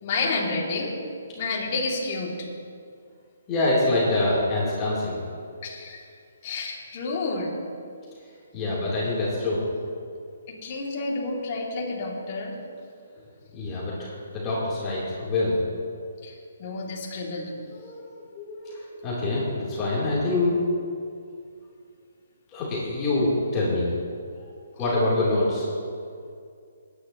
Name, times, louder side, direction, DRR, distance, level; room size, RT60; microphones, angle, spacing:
voice 1, 0.0-1.0 1.4-2.5 5.6-6.0 6.4-7.5 10.5-12.6 16.2-17.5 24.8-24.9, left 3 dB, 40° left, -3 dB, 2.8 m, -30 dB
voice 2, 3.5-5.2 8.5-9.6 13.5-15.6 17.8-20.6 22.5-23.9 24.8-25.7, left 2 dB, 20° left, -8 dB, 3.6 m, -25 dB
20.5 x 10.5 x 3.1 m, 2.4 s
hypercardioid pair, 145°, 0 cm